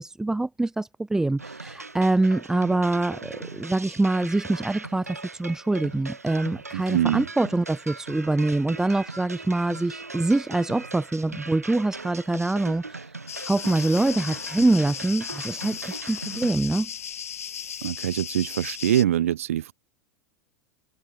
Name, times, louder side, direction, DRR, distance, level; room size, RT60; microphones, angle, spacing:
voice 1, 0.0-13.1 13.4-16.9, right 2 dB, 5° right, 1.1 m, -25 dB
sound 1, 1.4-16.5, right 3 dB, 85° right, 1.1 m, -40 dB
voice 2, 6.7-7.3 17.8-19.7, right 11 dB, 65° right, 0.4 m, -24 dB
sound 2, 13.3-19.0, left 8 dB, 70° left, 2.4 m, -36 dB
figure-of-eight pair, 85°, 8 cm